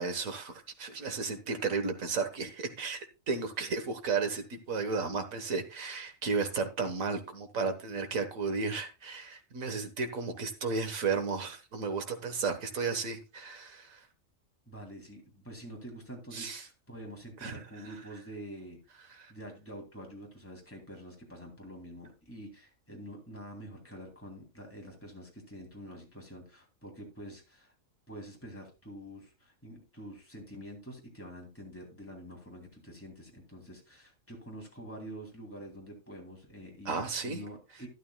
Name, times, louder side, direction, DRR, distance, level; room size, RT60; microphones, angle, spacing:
voice 1, 0.0-3.0 3.3-14.0 16.3-16.6 17.4-17.6 19.2-19.3 36.8-37.4, right 4 dB, 85° right, 1.8 m, -33 dB
voice 2, 14.7-27.7 28.1-37.9, equal, 10° left, 3.0 m, -47 dB
12.0 x 11.0 x 2.3 m
omnidirectional pair, 1.4 m